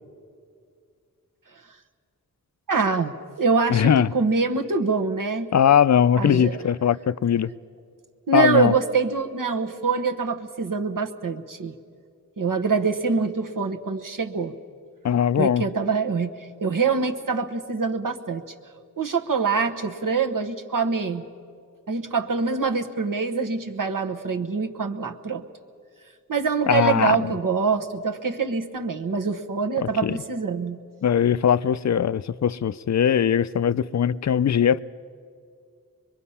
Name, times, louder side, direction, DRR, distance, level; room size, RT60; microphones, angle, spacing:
voice 1, 2.7-5.5 6.2-6.6 8.3-11.7 12.4-14.6 15.4-18.4 19.0-21.2 21.9-25.4 26.3-30.8, right 5 dB, 70° right, 1.1 m, -25 dB
voice 2, 3.7-4.1 5.5-7.5 8.3-8.7 15.0-15.7 26.7-27.2 30.0-30.2 31.0-34.8, left 8 dB, 55° left, 0.5 m, -20 dB
24.5 x 22.0 x 5.6 m
wide cardioid pair, 65°, 34 cm